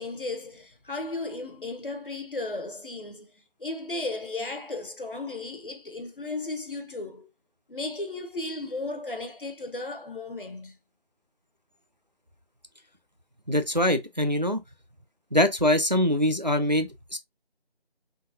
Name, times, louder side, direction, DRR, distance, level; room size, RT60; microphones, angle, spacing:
voice 1, 0.0-3.3 3.6-7.3 7.7-10.8, left 2 dB, 55° left, 0.9 m, -35 dB
voice 2, 13.5-14.6 15.3-17.2, left 1 dB, 45° right, 0.4 m, -23 dB
3.8 x 3.3 x 2.5 m
figure-of-eight pair, 180°, 32 cm